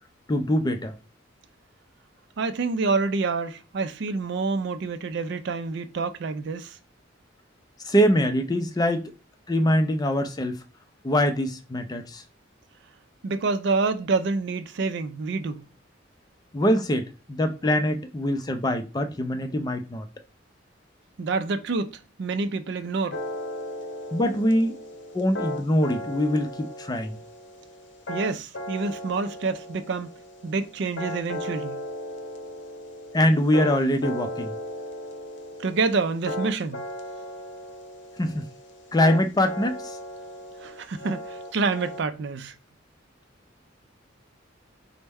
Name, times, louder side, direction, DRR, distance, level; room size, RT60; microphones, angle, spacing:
voice 1, 0.3-0.9 7.8-9.1 9.5-10.6 11.0-12.2 16.5-20.1 24.1-24.7 25.1-27.2 33.1-34.6 38.2-38.4 38.9-40.0, equal, 20° left, 0.4 m, -23 dB
voice 2, 2.4-6.8 13.2-15.6 21.2-23.2 28.1-30.1 30.4-31.8 35.6-36.8 40.6-42.5, right 4 dB, 60° right, 0.4 m, -27 dB
sound 1, 23.1-42.0, left 1 dB, 65° left, 0.7 m, -36 dB
4.3 x 2.1 x 3.4 m
head